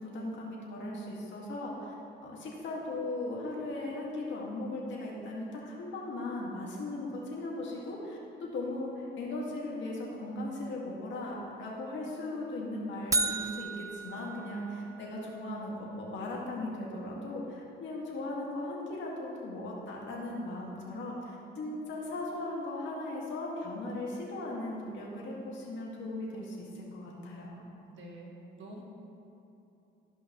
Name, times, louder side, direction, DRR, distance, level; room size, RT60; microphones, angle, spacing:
voice 1, 0.0-1.9 2.2-8.2 8.5-27.6, left 2 dB, 70° left, -3 dB, 1.8 m, -38 dB
sound 1, 13.1-15.2, right 3 dB, 15° right, 0.3 m, -33 dB
voice 2, 27.9-28.8, right 1 dB, 70° right, -2 dB, 1.6 m, -47 dB
13.5 x 5.3 x 3.0 m, 3.0 s
cardioid pair, 90°, 20 cm